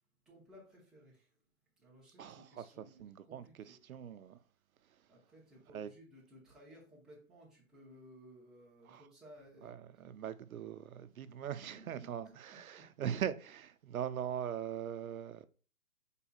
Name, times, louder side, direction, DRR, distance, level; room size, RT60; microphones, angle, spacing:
voice 1, 0.3-1.3 1.8-3.8 5.1-9.8 11.5-12.6, right 1 dB, ahead, 0.8 m, -58 dB
voice 2, 2.2-4.4 5.7-5.9 8.8-9.0 9.6-15.5, right 9 dB, 80° right, 0.6 m, -41 dB
5.5 x 4.0 x 2.4 m
hypercardioid pair, 150°, 42 cm